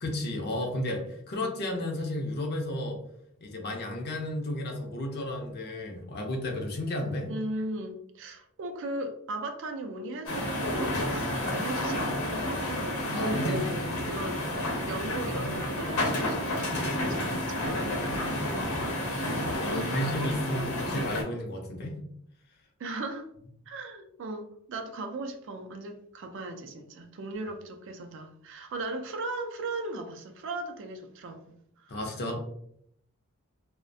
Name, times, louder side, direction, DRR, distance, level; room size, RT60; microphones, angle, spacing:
voice 1, 0.0-3.0 3.4-7.3 13.1-13.8 19.6-22.0 31.9-32.4, left 1 dB, 45° left, 2 dB, 0.5 m, -33 dB
voice 2, 7.3-12.9 13.1-18.8 19.7-20.7 22.8-23.3 23.7-32.0, right 2 dB, 55° right, 6 dB, 0.3 m, -38 dB
sound 1, 10.3-21.2, left 1 dB, 85° left, 0.8 m, -30 dB
2.4 x 2.1 x 2.6 m, 0.71 s
head